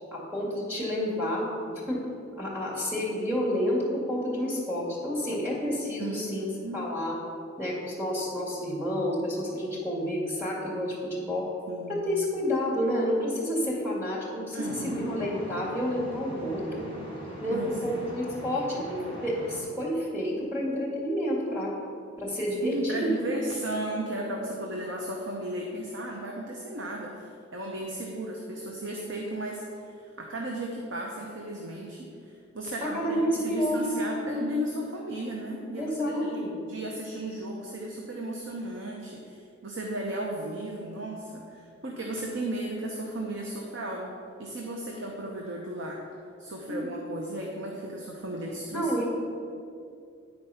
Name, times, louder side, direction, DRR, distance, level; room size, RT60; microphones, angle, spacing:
voice 1, 0.1-2.0 2.4-7.2 7.6-11.5 11.9-16.9 17.4-21.7 22.2-23.1 32.8-33.8 35.7-36.6 46.7-46.9 48.7-49.1, equal, 10° right, -6 dB, 2.0 m, -30 dB
voice 2, 6.0-6.9 11.7-12.0 14.5-15.2 17.5-18.1 22.6-27.3 27.5-29.6 30.2-32.1 32.5-44.1 44.4-46.0 46.4-48.9, right 1 dB, 65° right, -1 dB, 0.8 m, -35 dB
sound 1, 14.6-19.6, equal, 45° right, 1.7 m, -42 dB
9.8 x 4.5 x 5.6 m, 2.5 s
head